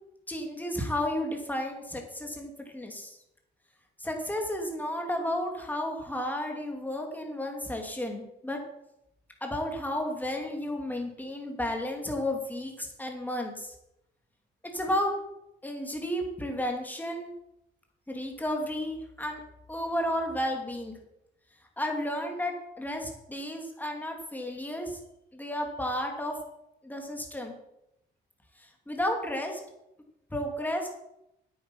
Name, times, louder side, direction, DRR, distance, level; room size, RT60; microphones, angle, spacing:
voice 1, 0.3-3.2 4.0-8.6 9.4-13.7 14.7-15.1 15.6-17.3 18.1-19.4 19.7-21.0 21.8-25.0 25.3-26.4 26.8-27.5 28.6-29.6 30.3-30.9, left 1 dB, 10° left, 2 dB, 2.7 m, -32 dB
9.0 x 9.0 x 5.6 m, 0.84 s
cardioid pair, 90°, 20 cm